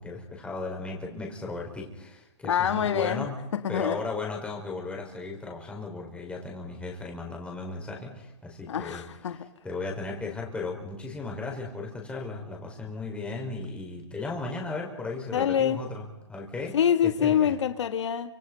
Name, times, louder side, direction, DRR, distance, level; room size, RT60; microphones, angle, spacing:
voice 1, 0.0-3.4 3.7-9.0 9.6-17.6, left 3 dB, 5° left, 4.8 m, -36 dB
voice 2, 2.5-3.2 3.6-4.0 8.7-9.5 15.3-15.8 16.7-18.3, left 9 dB, 75° left, 1.8 m, -25 dB
29.5 x 26.0 x 5.4 m
hypercardioid pair, 145°, 15 cm